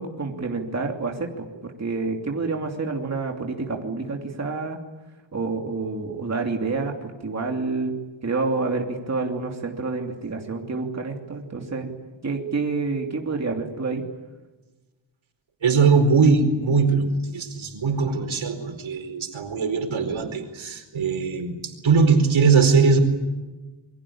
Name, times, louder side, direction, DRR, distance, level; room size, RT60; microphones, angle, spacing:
voice 1, 0.0-4.8 5.3-7.9 8.2-11.9 12.2-14.0, right 3 dB, 35° right, 2 dB, 2.9 m, -28 dB
voice 2, 15.6-23.0, right 4 dB, 85° right, 6 dB, 4.6 m, -20 dB
28.0 x 23.0 x 8.7 m, 1.2 s
wide cardioid pair, 175°, 46 cm